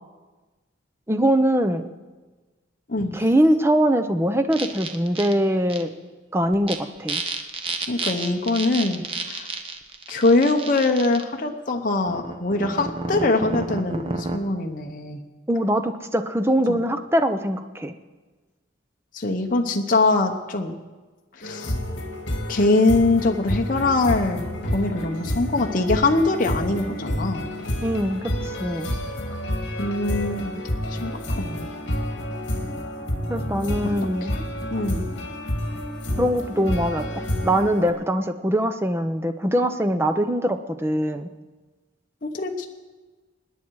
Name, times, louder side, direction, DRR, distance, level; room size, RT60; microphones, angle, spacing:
voice 1, 1.1-1.9 3.1-5.9 6.3-7.2 15.5-17.9 27.8-28.9 33.3-34.3 36.2-41.3, equal, 10° right, 9 dB, 0.7 m, -22 dB
sound 1, 4.5-5.3 5.7-5.8 6.5-6.8 7.1-11.2 12.1-14.4, right 3 dB, 30° right, 1.0 m, -30 dB
voice 2, 7.9-9.5 10.1-15.2 16.7-16.8 19.1-20.7 21.4-21.8 22.5-24.4 24.7-27.5 29.8-30.6 30.9-31.7 34.7-35.1 42.2-42.7, left 2 dB, 45° left, 3 dB, 0.9 m, -23 dB
sound 2, 21.4-37.9, left 1 dB, 60° left, 2.0 m, -29 dB
25.5 x 10.0 x 4.8 m, 1.3 s
head